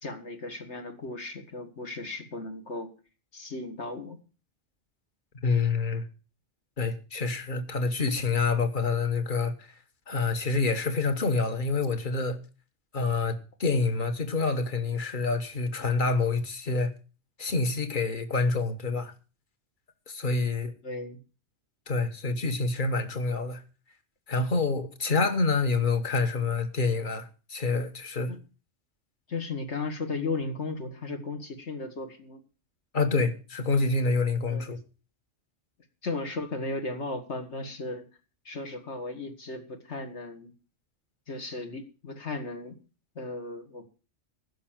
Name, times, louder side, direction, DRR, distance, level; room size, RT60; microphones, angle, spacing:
voice 1, 0.0-2.9 3.3-4.2 20.8-21.2 28.3-28.4 29.3-32.4 34.5-34.7 36.0-38.0 38.5-40.5 41.3-42.8 43.2-43.8, left 3 dB, 70° left, 2.2 m, -35 dB
voice 2, 5.4-6.0 6.8-9.7 10.1-12.4 12.9-16.9 17.4-19.1 20.1-20.7 21.9-23.6 24.3-28.3 32.9-34.8, left 3 dB, 45° left, 1.5 m, -27 dB
15.5 x 6.4 x 7.4 m
omnidirectional pair, 1.2 m